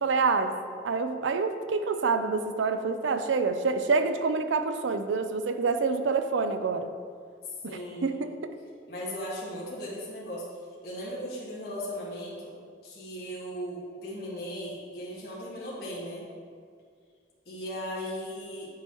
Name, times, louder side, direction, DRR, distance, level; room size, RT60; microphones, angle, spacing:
voice 1, 0.0-0.5 0.8-6.9 7.6-8.3, right 4 dB, 90° right, 8 dB, 0.5 m, -27 dB
voice 2, 7.6-8.1 8.9-10.4 10.8-12.5 12.8-16.3 17.4-18.7, equal, 55° left, -7 dB, 1.7 m, -37 dB
9.6 x 4.6 x 3.0 m, 2.1 s
head